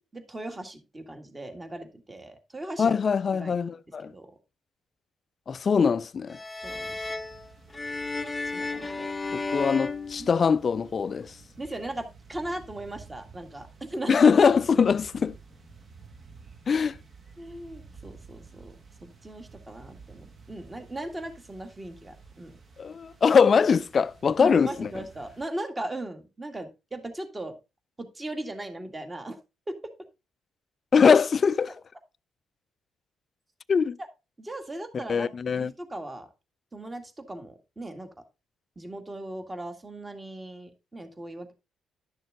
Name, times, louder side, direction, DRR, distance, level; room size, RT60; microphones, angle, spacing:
voice 1, 0.0-3.0 3.3-3.6 4.0-4.3 6.6-7.0 8.5-9.1 10.2-10.3 11.6-14.2 17.4-18.8 19.0-22.5 24.4-27.5 28.0-29.4 29.7-29.8 34.4-36.3 36.7-38.1 38.8-41.5, right 1 dB, 20° right, 1.9 m, -38 dB
voice 2, 2.8-4.1 5.5-6.4 9.3-11.4 14.1-15.4 16.7-17.0 22.8-24.9 30.9-31.7 33.7-34.0 34.9-35.7, left 6 dB, 45° left, 0.4 m, -22 dB
sound 1, 6.3-10.9, left 3 dB, 15° left, 0.8 m, -34 dB
sound 2, 6.6-25.4, right 4 dB, 45° right, 1.9 m, -52 dB
11.5 x 6.4 x 3.7 m
cardioid pair, 90°, 0 cm